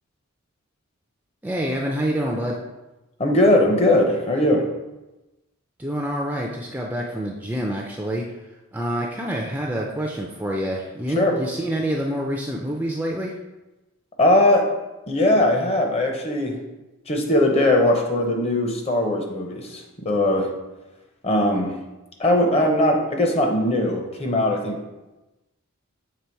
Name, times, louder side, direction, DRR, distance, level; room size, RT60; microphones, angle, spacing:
voice 1, 1.4-2.6 5.8-8.2 8.7-13.3, equal, 10° right, -1 dB, 0.4 m, -27 dB
voice 2, 3.2-4.7 11.2-11.3 14.2-14.7 15.1-16.6 17.1-20.5 21.2-21.7 22.2-24.8, left 1 dB, 30° left, 2 dB, 0.7 m, -20 dB
6.8 x 3.3 x 4.5 m, 1.0 s
head